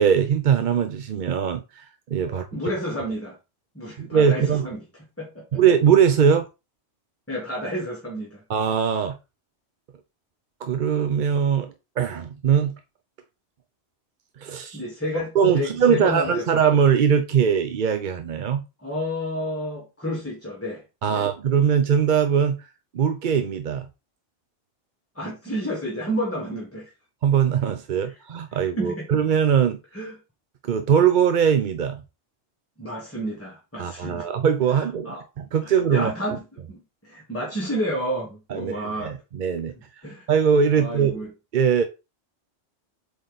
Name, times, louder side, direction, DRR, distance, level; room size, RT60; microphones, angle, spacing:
voice 1, 0.0-2.5 4.0-4.7 5.5-6.5 8.5-9.2 10.6-12.7 14.4-14.8 15.3-18.6 21.0-22.7 22.9-23.9 27.2-29.8 30.6-32.0 33.8-36.1 38.5-39.7 40.3-41.2 41.5-41.8, right 7 dB, 50° right, 0.7 m, -21 dB
voice 2, 2.3-3.4 3.7-4.8 5.2-5.6 7.3-8.4 14.7-16.5 18.8-20.8 21.1-21.3 25.1-26.9 28.8-29.1 29.9-30.2 32.8-34.3 34.7-35.2 35.6-36.4 36.7-39.1 40.0-40.3 40.7-41.3, equal, 10° left, 1.4 m, -30 dB
7.7 x 3.5 x 4.0 m
omnidirectional pair, 1.2 m